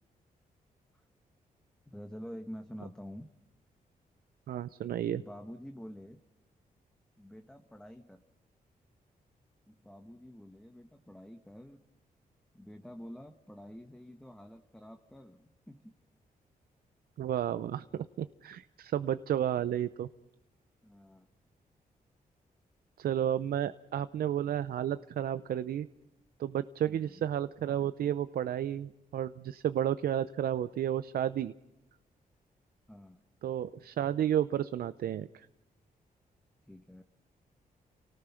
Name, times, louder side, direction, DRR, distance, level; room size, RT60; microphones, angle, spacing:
voice 1, 1.9-3.3 5.1-6.2 7.2-8.2 9.7-11.8 12.5-15.9 20.8-21.3 26.8-27.3 32.9-33.2 36.7-37.0, equal, 5° left, 5 dB, 1.4 m, -48 dB
voice 2, 4.5-5.2 17.2-17.9 18.2-20.1 23.0-25.9 26.4-31.5 33.4-35.5, right 10 dB, 85° right, 13 dB, 0.7 m, -32 dB
30.0 x 18.5 x 5.9 m, 0.94 s
cardioid pair, 115°, 15 cm